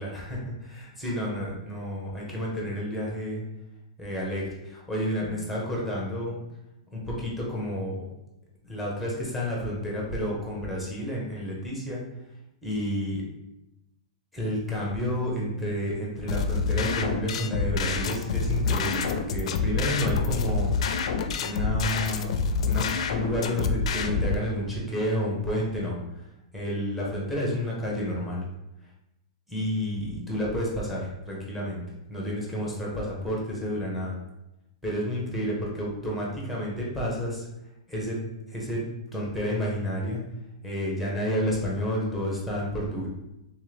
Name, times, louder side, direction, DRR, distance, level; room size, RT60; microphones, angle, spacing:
voice 1, 0.0-3.4 4.0-6.4 6.9-8.0 8.6-12.0 12.6-13.2 14.3-20.7 21.4-26.2 26.5-28.4 29.5-31.8 32.1-34.2 34.8-37.5 37.9-38.2 38.5-38.8 39.1-40.2 40.6-43.1, equal, ahead, -4 dB, 0.8 m, -30 dB
sound 1, 16.3-24.3, left 4 dB, 60° left, 0.4 m, -27 dB
3.6 x 3.5 x 3.2 m, 0.90 s
supercardioid pair, 170°, 4 cm